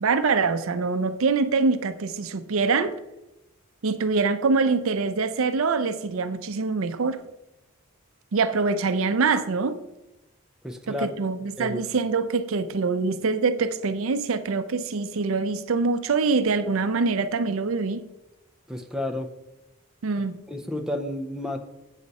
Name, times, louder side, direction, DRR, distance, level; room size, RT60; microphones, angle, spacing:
voice 1, 0.0-3.0 3.8-7.2 8.3-9.8 10.9-18.1 20.0-20.4, right 4 dB, 65° right, 0.5 m, -24 dB
voice 2, 10.6-11.1 11.6-11.8 18.7-19.3 20.5-21.6, left 1 dB, 5° right, 0.6 m, -31 dB
8.2 x 6.5 x 4.1 m
head